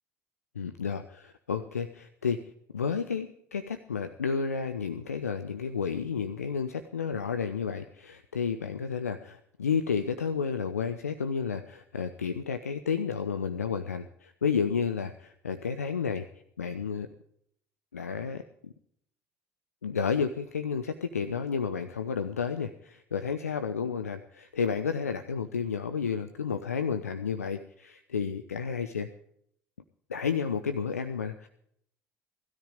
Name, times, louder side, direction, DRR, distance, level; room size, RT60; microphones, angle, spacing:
voice 1, 0.6-16.3 16.6-17.1 17.9-18.7 19.8-29.1 30.1-31.5, left 6 dB, 85° left, 9 dB, 0.5 m, -31 dB
17.5 x 13.0 x 5.0 m, 0.70 s
figure-of-eight pair, 55°, 8 cm